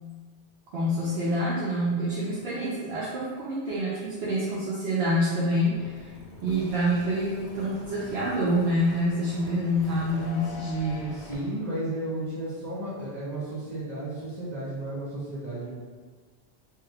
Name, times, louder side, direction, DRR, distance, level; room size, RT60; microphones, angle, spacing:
voice 1, 0.7-6.1 6.4-11.2, equal, 75° right, -7 dB, 0.8 m, -27 dB
sound 1, 5.7-11.3, left 3 dB, 80° left, 0.9 m, -44 dB
voice 2, 11.1-15.7, right 1 dB, 20° right, -12 dB, 0.9 m, -33 dB
3.1 x 2.3 x 3.3 m, 1.5 s
omnidirectional pair, 1.1 m